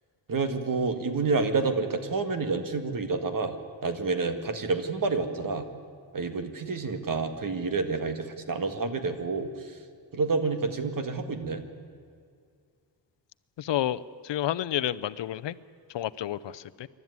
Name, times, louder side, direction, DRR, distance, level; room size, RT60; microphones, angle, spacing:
voice 1, 0.3-3.6 3.8-5.6 6.1-9.8 10.1-11.6, right 4 dB, 50° right, 8 dB, 1.9 m, -29 dB
voice 2, 13.6-15.5 15.9-16.9, left 12 dB, 75° left, 15 dB, 0.7 m, -30 dB
27.0 x 12.5 x 9.6 m, 2.2 s
wide cardioid pair, 130°, 43 cm